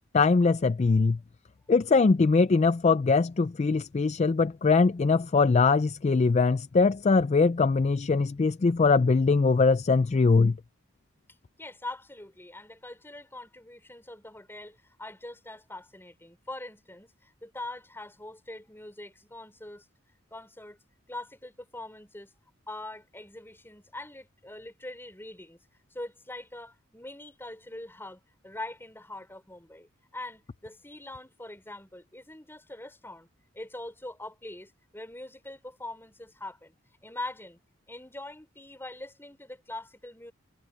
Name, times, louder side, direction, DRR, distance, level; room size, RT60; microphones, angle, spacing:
voice 1, 0.1-1.2 1.7-10.6, left 4 dB, 30° left, 0.4 m, -22 dB
voice 2, 11.6-19.9 20.3-20.8 21.1-22.3 22.7-25.6 25.9-33.3 33.5-36.8 37.0-37.6 37.9-40.3, left 2 dB, 10° left, 5.5 m, -43 dB
head